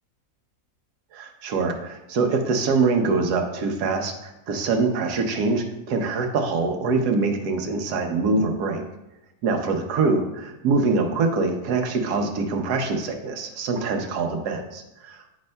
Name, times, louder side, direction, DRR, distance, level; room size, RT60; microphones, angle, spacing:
voice 1, 1.1-8.8 9.4-15.3, right 4 dB, 80° right, 4 dB, 1.3 m, -24 dB
9.6 x 5.2 x 2.2 m, 0.91 s
omnidirectional pair, 1.7 m